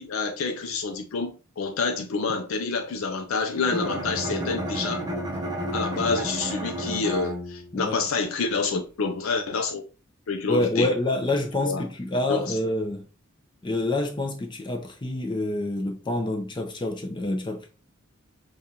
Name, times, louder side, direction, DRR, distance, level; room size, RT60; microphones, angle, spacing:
voice 1, 0.0-5.1 5.7-9.8 10.3-10.9 11.6-11.8 12.3-12.6, left 4 dB, 75° left, 0.5 m, -28 dB
Bowed string instrument, 3.6-7.9, equal, 20° right, 0.6 m, -31 dB
voice 2, 7.7-8.0 10.5-13.1 13.6-17.7, left 2 dB, 25° left, 0.5 m, -27 dB
5.0 x 2.4 x 2.8 m
head